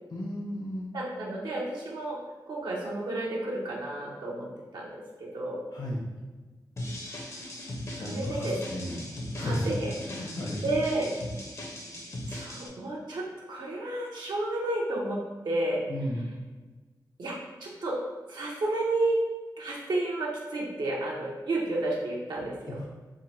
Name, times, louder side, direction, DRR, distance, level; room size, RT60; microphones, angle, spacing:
voice 1, 0.1-0.9 5.7-6.0 8.0-9.0 9.3-9.6 10.0-10.6 15.9-16.2 22.7-22.9, left 1 dB, 65° left, -3 dB, 1.1 m, -34 dB
voice 2, 0.9-2.2 2.5-4.5 4.7-4.9 5.2-5.6 8.0-8.6 9.4-10.0 10.6-11.1 12.3-15.8 17.2-17.3 17.6-18.0 18.3-19.2 19.6-22.5, right 2 dB, 80° right, -4 dB, 0.9 m, -31 dB
sound 1, 6.8-12.7, left 1 dB, 40° left, 0.8 m, -38 dB
3.8 x 2.2 x 4.2 m, 1.3 s
wide cardioid pair, 95°, 7 cm